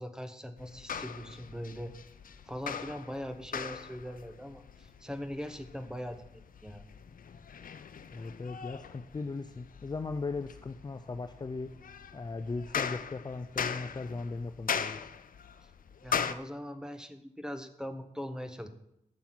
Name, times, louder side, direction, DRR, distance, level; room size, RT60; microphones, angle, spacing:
voice 1, 0.0-1.9 2.4-6.8 15.6-15.7 16.0-18.7, equal, 5° right, 8 dB, 0.9 m, -41 dB
sound 1, 0.6-16.3, left 7 dB, 75° left, 0.6 m, -40 dB
voice 2, 8.1-11.7 12.1-15.1, left 3 dB, 30° left, 8 dB, 0.5 m, -38 dB
12.0 x 5.8 x 7.4 m, 0.81 s
wide cardioid pair, 150°, 14 cm